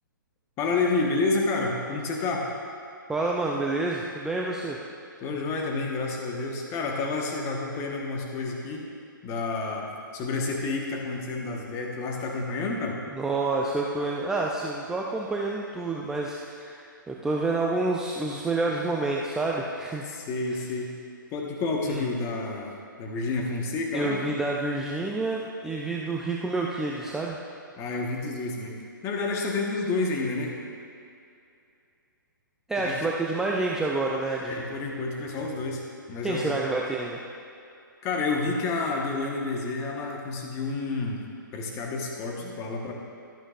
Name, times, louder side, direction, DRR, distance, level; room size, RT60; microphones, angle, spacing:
voice 1, 0.6-2.5 5.2-8.8 9.2-9.9 10.1-13.0 20.1-20.9 21.3-22.7 23.0-24.2 27.8-28.8 29.0-30.5 32.8-33.0 34.4-36.6 38.0-41.2 41.5-42.9, left 3 dB, 25° left, 0 dB, 1.3 m, -29 dB
voice 2, 3.1-4.8 13.1-20.0 20.5-20.6 21.9-22.0 23.9-27.4 32.7-34.7 36.2-37.2, right 2 dB, 5° right, -2 dB, 0.4 m, -28 dB
12.0 x 11.0 x 2.5 m, 2.6 s
figure-of-eight pair, 130°, 11 cm